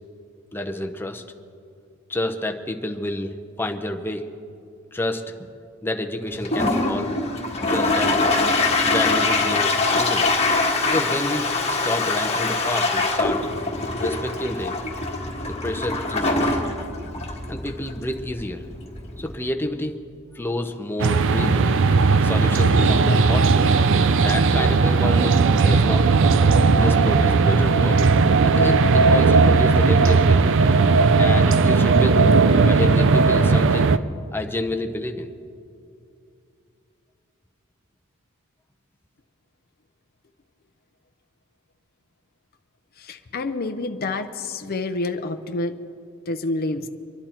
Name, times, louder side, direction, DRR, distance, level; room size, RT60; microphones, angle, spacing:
voice 1, 0.5-1.2 2.1-4.3 4.9-5.5 5.8-7.1 7.7-8.2 8.8-10.4 10.8-13.4 14.0-14.8 15.4-16.5 17.5-18.7 19.2-20.0 20.3-21.7 22.2-23.7 24.0-26.1 26.8-28.1 28.4-30.6 31.2-32.2 32.7-33.9 34.3-35.3, left 1 dB, 10° left, 4 dB, 0.8 m, -29 dB
Toilet flush, 6.3-19.5, left 3 dB, 30° left, 1.6 m, -23 dB
sound 1, 21.0-34.0, right 4 dB, 60° right, 0.5 m, -17 dB
voice 2, 43.0-45.8 46.3-46.9, left 2 dB, 45° left, 6 dB, 0.6 m, -28 dB
24.5 x 11.5 x 4.4 m, 2.4 s
head